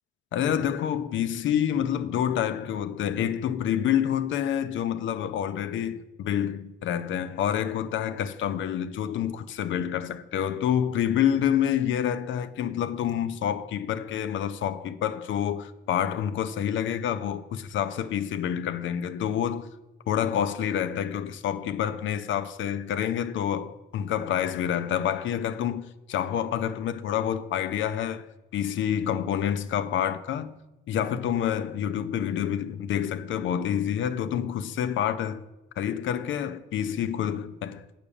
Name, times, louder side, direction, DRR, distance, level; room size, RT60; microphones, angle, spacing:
voice 1, 0.3-19.7 20.1-28.3 28.5-30.6 30.9-35.4 35.8-37.8, left 9 dB, 75° left, 0.7 m, -28 dB
8.5 x 6.0 x 7.0 m
cardioid pair, 90°, 20 cm